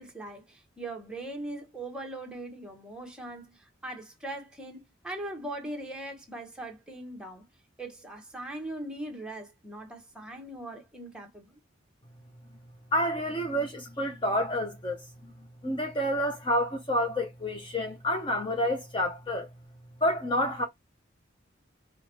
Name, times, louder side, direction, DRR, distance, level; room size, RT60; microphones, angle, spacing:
voice 1, 0.0-7.4 7.8-11.6, right 1 dB, 5° right, 1.0 m, -40 dB
voice 2, 12.9-15.0 15.2-15.3 15.6-19.5 20.0-20.7, equal, 25° left, 0.6 m, -29 dB
4.7 x 2.2 x 2.9 m
head